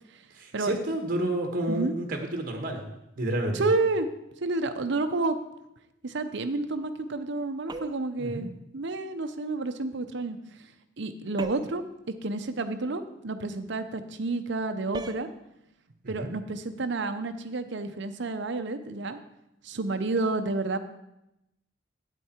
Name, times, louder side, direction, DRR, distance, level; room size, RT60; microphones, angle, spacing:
voice 1, 0.3-3.7 8.2-8.5 16.0-16.3, right 1 dB, 45° right, 3 dB, 1.4 m, -30 dB
voice 2, 3.5-4.1 4.4-5.4 6.0-10.4 11.0-11.8 12.2-15.3 16.1-19.2 19.6-20.8, right 3 dB, 65° right, 9 dB, 0.7 m, -30 dB
sound 1, 7.7-8.2 11.4-11.9 14.9-15.3, right 2 dB, 20° right, 0.4 m, -38 dB
9.0 x 8.3 x 4.4 m, 0.86 s
head